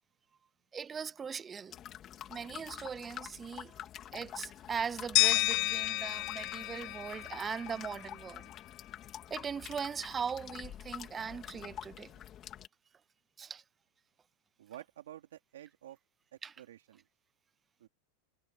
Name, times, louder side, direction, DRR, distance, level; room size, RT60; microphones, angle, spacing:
voice 1, 0.7-1.8 2.3-3.8 4.1-8.5 9.3-12.1 13.4-13.6 16.4-16.5, right 6 dB, 20° right, 0.4 m, -40 dB
sound 1, 1.7-12.7, left 11 dB, 35° left, 2.3 m, -47 dB
sound 2, 5.2-8.1, left 22 dB, 50° left, 0.3 m, -31 dB
voice 2, 14.6-16.0 16.3-17.0 17.8-17.9, right 12 dB, 85° right, 3.9 m, -50 dB
supercardioid pair, 125°, 0 cm